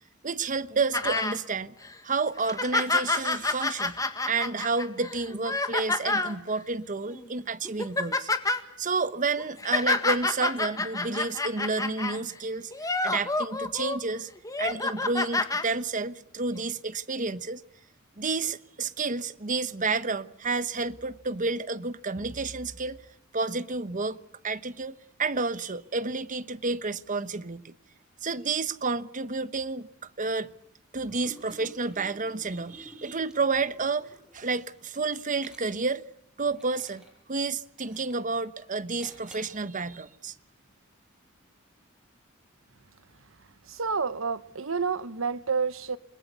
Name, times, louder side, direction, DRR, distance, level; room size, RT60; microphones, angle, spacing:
voice 1, 0.2-1.7 2.0-4.0 4.3-8.3 8.8-14.3 14.6-17.6 18.2-23.0 23.3-24.2 24.4-27.7 28.2-29.9 30.2-30.5 30.9-36.0 36.4-37.0 37.3-40.3, right 4 dB, 40° right, 1.1 m, -30 dB
sound 1, 0.9-1.4 1.8-1.9 2.4-6.4 7.1-7.3 7.6-8.6 9.4-12.2 12.7-14.0 14.4-15.6 16.6-16.7, left 3 dB, 15° left, 1.8 m, -28 dB
Liquid, 31.0-36.0 36.5-37.2 37.8-38.3 39.0-39.6, equal, 5° right, 7.7 m, -52 dB
voice 2, 43.7-46.0, right 5 dB, 70° right, 1.1 m, -29 dB
28.5 x 21.5 x 6.9 m
head